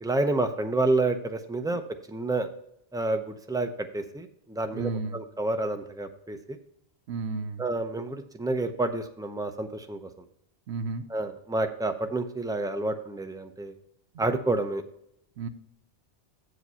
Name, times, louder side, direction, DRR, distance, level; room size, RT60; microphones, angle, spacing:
voice 1, 0.0-1.8 2.1-2.5 2.9-6.6 7.6-10.1 11.1-13.7 14.2-14.8, right 2 dB, 5° right, 6 dB, 0.4 m, -29 dB
voice 2, 4.7-5.2 7.1-7.6 10.7-11.1 15.4-15.5, right 4 dB, 80° right, 10 dB, 1.0 m, -32 dB
7.9 x 5.0 x 5.5 m, 0.75 s
omnidirectional pair, 1.1 m